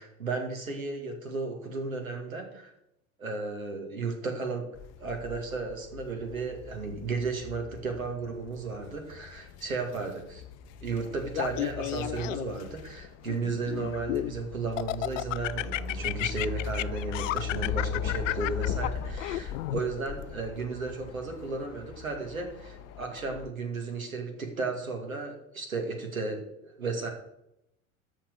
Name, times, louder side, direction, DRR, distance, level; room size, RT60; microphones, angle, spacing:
voice 1, 0.0-2.7 3.2-4.7 5.0-10.4 10.8-27.1, right 4 dB, 85° right, 3 dB, 2.2 m, -34 dB
sound 1, 4.8-23.5, left 6 dB, 40° left, 0.9 m, -39 dB
Laughter, 11.3-12.6 13.2-14.3 14.8-19.8, left 16 dB, 65° left, 0.5 m, -32 dB
12.5 x 4.3 x 7.0 m, 0.82 s
figure-of-eight pair, 80°, 41 cm